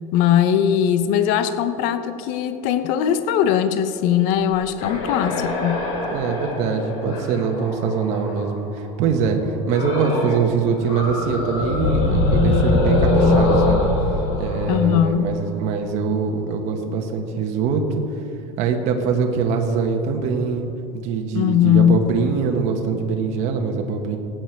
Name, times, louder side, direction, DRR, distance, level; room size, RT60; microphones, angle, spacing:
voice 1, 0.1-5.8 14.7-15.3 21.3-22.1, left 9 dB, 55° left, 11 dB, 0.7 m, -19 dB
sound 1, 4.7-8.6 9.7-10.4 10.7-15.6, left 2 dB, 85° left, 3.2 m, -22 dB
voice 2, 6.1-13.9 14.4-18.0 18.6-20.7 21.0-24.2, right 5 dB, 45° right, 3 dB, 1.2 m, -23 dB
16.5 x 9.2 x 4.6 m, 2.6 s
cardioid pair, 170°, 16 cm